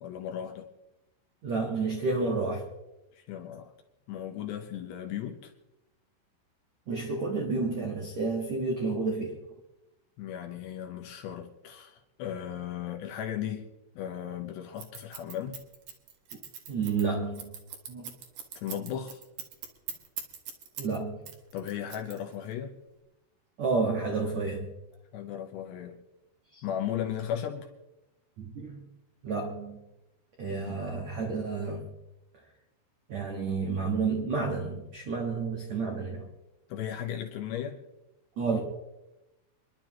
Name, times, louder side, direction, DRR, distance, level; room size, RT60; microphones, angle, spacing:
voice 1, 0.0-0.7 3.2-3.7 4.1-5.5 10.2-13.7 14.0-15.6 18.6-19.2 21.5-22.7 25.1-26.0 26.6-27.7 30.6-30.8 36.7-37.8, left 10 dB, 75° left, 4 dB, 2.8 m, -36 dB
voice 2, 1.4-2.7 6.9-9.4 16.7-17.6 17.9-18.1 20.8-21.2 23.6-24.7 26.5-26.6 28.4-28.8 29.2-29.8 30.4-31.9 33.1-36.3 38.4-38.6, right 4 dB, 80° right, 0 dB, 1.5 m, -30 dB
Scissors, 14.8-21.0 21.3-22.5, right 8 dB, 65° right, 2.3 m, -41 dB
27.5 x 11.5 x 3.0 m, 0.97 s
omnidirectional pair, 5.8 m